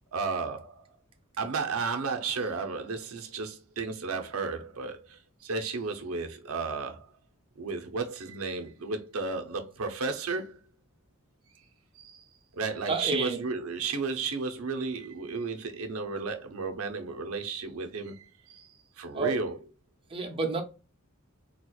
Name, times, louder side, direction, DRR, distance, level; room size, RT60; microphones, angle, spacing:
voice 1, 0.1-0.8 1.4-7.1 7.6-10.6 12.0-12.2 12.5-19.6, right 4 dB, 85° right, 0.7 m, -33 dB
voice 2, 12.9-13.4 19.1-19.4 20.1-20.6, right 3 dB, 25° right, 0.6 m, -29 dB
4.2 x 2.3 x 2.3 m
head